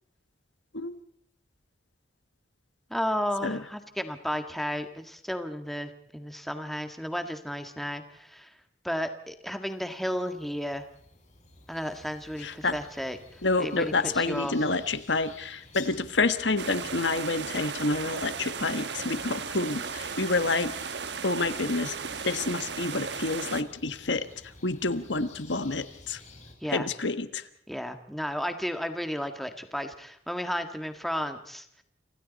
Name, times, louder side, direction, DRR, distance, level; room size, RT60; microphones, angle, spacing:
voice 1, 2.9-8.5 8.8-10.8 11.7-13.2 13.6-14.5 26.6-26.9 27.7-31.6, equal, ahead, 6 dB, 1.8 m, -33 dB
sound 1, 9.8-26.5, left 3 dB, 35° left, 6.3 m, -52 dB
voice 2, 12.4-12.7 13.4-20.8 21.2-22.0 22.2-26.2 26.7-27.5, left 3 dB, 70° left, 11 dB, 1.4 m, -28 dB
sound 2, 16.6-23.6, right 6 dB, 60° right, 1.3 m, -36 dB
29.5 x 27.0 x 4.2 m, 0.69 s
head